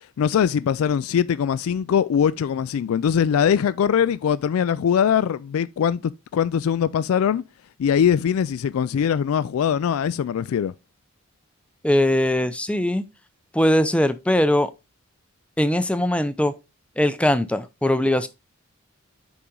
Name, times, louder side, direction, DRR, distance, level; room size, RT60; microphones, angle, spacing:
voice 1, 0.2-6.0 6.3-7.4 7.8-10.7, left 8 dB, 85° left, 0.3 m, -21 dB
voice 2, 11.8-13.1 13.5-14.7 15.6-16.5 17.0-18.3, left 1 dB, 5° left, 0.5 m, -20 dB
7.0 x 4.9 x 3.8 m
head